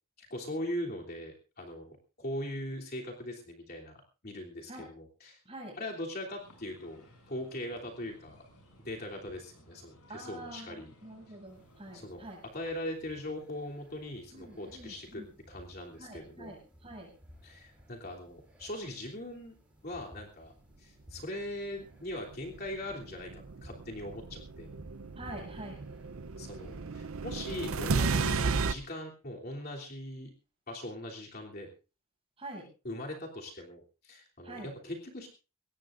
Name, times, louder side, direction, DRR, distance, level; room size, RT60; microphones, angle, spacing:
voice 1, 0.2-5.4 5.8-8.4 8.8-10.9 11.9-12.2 12.5-16.5 17.4-19.5 19.8-20.5 20.8-24.7 26.4-30.3 30.7-31.7 32.8-35.3, left 1 dB, 45° left, 0 dB, 3.1 m, -40 dB
voice 2, 5.4-5.8 10.1-12.4 14.3-15.3 16.0-17.1 25.1-25.8 32.4-32.7 34.4-34.7, right 1 dB, 25° right, 0 dB, 7.3 m, -46 dB
sound 1, 6.4-12.0, equal, 90° left, 7.5 m, -59 dB
sound 2, 11.5-27.9, equal, 5° right, 6.6 m, -58 dB
sound 3, 22.3-28.7, right 4 dB, 70° right, 0.6 m, -34 dB
22.0 x 18.5 x 2.6 m, 0.32 s
head